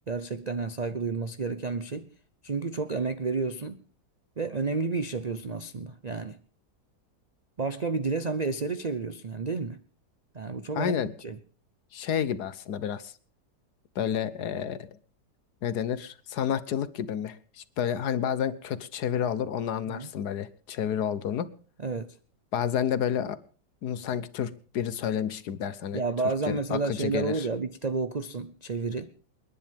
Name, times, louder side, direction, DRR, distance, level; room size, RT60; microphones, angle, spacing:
voice 1, 0.1-2.1 2.4-3.8 4.4-6.4 7.6-9.8 10.3-11.4 19.9-20.1 21.8-22.2 25.9-29.1, right 4 dB, 90° right, 0.3 m, -31 dB
voice 2, 10.7-11.1 11.9-13.1 13.9-14.9 15.6-21.5 22.5-23.4 23.8-26.0 26.5-27.5, left 8 dB, 65° left, 1.4 m, -30 dB
28.5 x 10.5 x 3.5 m
omnidirectional pair, 1.9 m